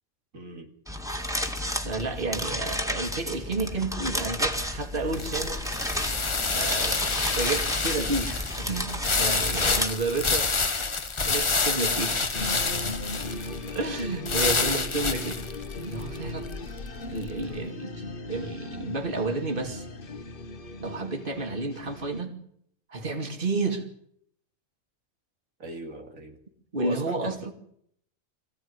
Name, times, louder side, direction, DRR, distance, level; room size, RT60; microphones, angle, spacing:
voice 1, 0.3-0.7 25.6-26.4 26.8-27.5, right 1 dB, 85° right, 3.0 m, -37 dB
sound 1, 0.9-9.9, equal, ahead, 2.1 m, -32 dB
voice 2, 1.8-5.6 6.5-10.5 11.2-13.0 13.7-15.4 15.8-16.5 17.1-19.9 20.8-22.4 22.9-23.8 26.7-27.5, right 3 dB, 40° right, 2.7 m, -31 dB
sound 2, 4.1-17.4, left 4 dB, 25° left, 0.9 m, -28 dB
sound 3, 12.3-22.2, left 2 dB, 45° left, 1.3 m, -38 dB
24.0 x 16.0 x 9.7 m
omnidirectional pair, 1.4 m